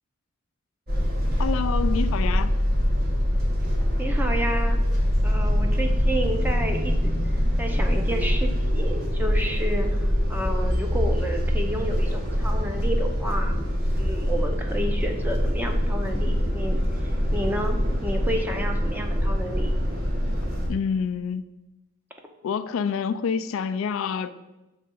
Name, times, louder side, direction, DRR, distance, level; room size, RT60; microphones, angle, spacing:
sound 1, 0.9-20.7, equal, 45° right, 1.2 m, -24 dB
voice 1, 1.4-2.5 20.7-21.5 22.4-24.3, left 6 dB, 65° left, 13 dB, 0.3 m, -27 dB
voice 2, 4.0-4.8 5.2-7.2 7.6-13.6 14.0-19.7, right 1 dB, 10° right, 3 dB, 0.6 m, -31 dB
6.6 x 3.2 x 5.3 m, 1.0 s
head